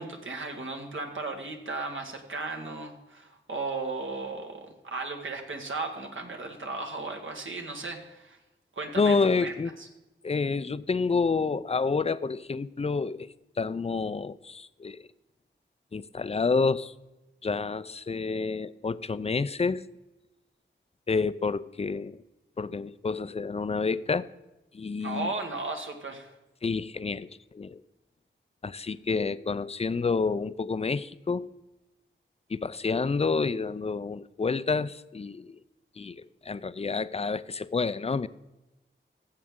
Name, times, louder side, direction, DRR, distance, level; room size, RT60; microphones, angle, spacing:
voice 1, 0.0-8.4 8.7-9.9 25.0-26.3, right 3 dB, 70° right, 1.6 m, -36 dB
voice 2, 8.9-9.7 10.2-13.3 13.6-15.1 15.9-16.9 17.4-19.8 21.1-22.2 22.6-24.3 24.7-25.3 26.6-27.8 28.6-31.5 32.5-35.6 36.0-38.3, left 4 dB, 30° left, 0.4 m, -29 dB
14.5 x 7.5 x 3.7 m
wide cardioid pair, 60°, 21 cm